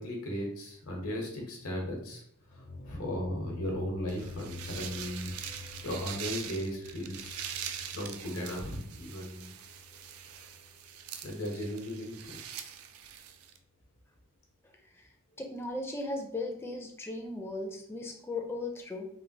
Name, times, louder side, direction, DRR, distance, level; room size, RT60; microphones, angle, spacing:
voice 1, 0.0-2.2 2.5-5.3 5.8-7.6 7.9-9.5 10.3-10.5 11.2-12.4, equal, 80° left, 0 dB, 0.9 m, -37 dB
sound 1, 2.4-11.4, left 3 dB, 55° left, 0.6 m, -47 dB
sound 2, 4.1-13.6, right 9 dB, 80° right, 0.3 m, -43 dB
voice 2, 15.4-19.1, left 2 dB, 10° left, 2 dB, 0.4 m, -37 dB
3.2 x 2.3 x 2.7 m, 0.67 s
head